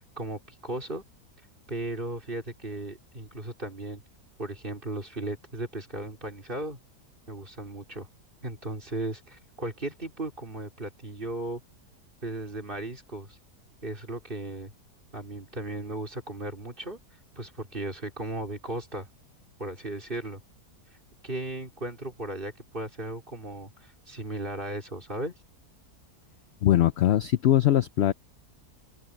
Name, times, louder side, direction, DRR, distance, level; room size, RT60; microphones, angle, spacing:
voice 1, 0.2-1.0 1.7-4.0 4.4-6.8 7.3-8.1 8.4-11.6 12.2-13.4 13.8-14.7 15.1-17.0 17.4-19.1 19.6-20.4 21.2-25.3, right 2 dB, 35° right, 4.5 m, -36 dB
voice 2, 26.6-28.1, left 12 dB, 65° left, 0.6 m, -21 dB
open air
omnidirectional pair, 1.7 m